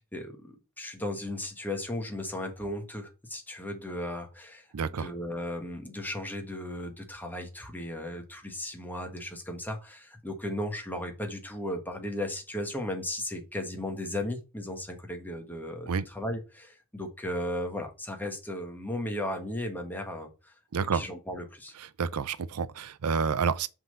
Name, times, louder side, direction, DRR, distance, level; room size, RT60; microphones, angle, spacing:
voice 1, 0.1-4.7 5.0-20.5 20.9-21.7, left 1 dB, 10° left, 1.3 m, -36 dB
voice 2, 4.7-5.1 15.9-16.0 20.7-21.0 21.8-23.7, right 5 dB, 90° right, 0.5 m, -29 dB
5.8 x 3.9 x 5.3 m
head